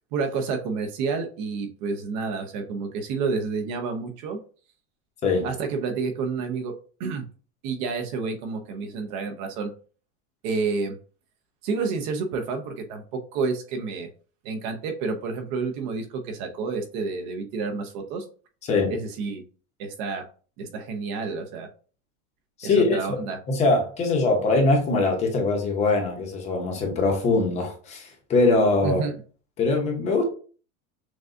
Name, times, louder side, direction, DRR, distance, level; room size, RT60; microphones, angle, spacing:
voice 1, 0.1-4.4 5.4-6.7 7.0-7.3 7.6-9.7 10.4-11.0 11.6-14.1 14.4-18.3 18.9-19.4 19.8-20.2 20.6-21.7 22.6-23.4 28.8-29.1, right 4 dB, 45° right, 0.7 m, -29 dB
voice 2, 18.6-19.0 22.6-23.2 23.5-29.0 29.6-30.2, left 3 dB, 20° left, 0.8 m, -22 dB
6.1 x 2.3 x 2.6 m
supercardioid pair, 175°, 33 cm